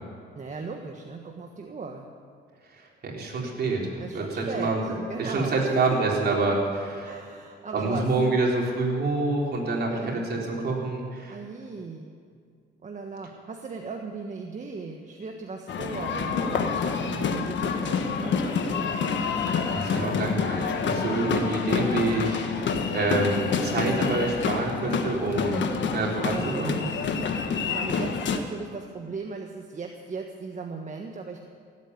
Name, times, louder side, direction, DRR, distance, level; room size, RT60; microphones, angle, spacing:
voice 1, 0.3-2.1 4.0-6.4 7.0-8.1 9.9-10.3 11.3-12.1 12.8-19.2 26.3-27.2 27.6-31.5, right 4 dB, 40° right, 3 dB, 1.3 m, -37 dB
voice 2, 3.0-4.8 5.2-6.6 6.8-7.1 7.7-11.4 19.7-26.8, right 3 dB, 55° right, -2 dB, 4.1 m, -27 dB
sound 1, 15.7-28.4, left 5 dB, 65° left, 1.4 m, -27 dB
17.0 x 8.7 x 9.7 m, 2.2 s
cardioid pair, 90°, 20 cm